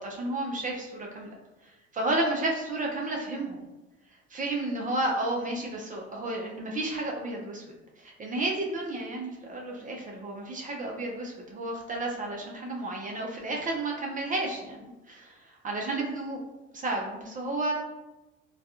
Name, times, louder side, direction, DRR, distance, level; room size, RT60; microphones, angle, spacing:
voice 1, 0.0-1.4 1.9-3.6 4.3-7.6 8.0-15.4 15.6-16.4 16.7-17.7, right 2 dB, 25° right, -1 dB, 0.5 m, -32 dB
2.3 x 2.2 x 2.8 m, 1.1 s
hypercardioid pair, 65°, 34 cm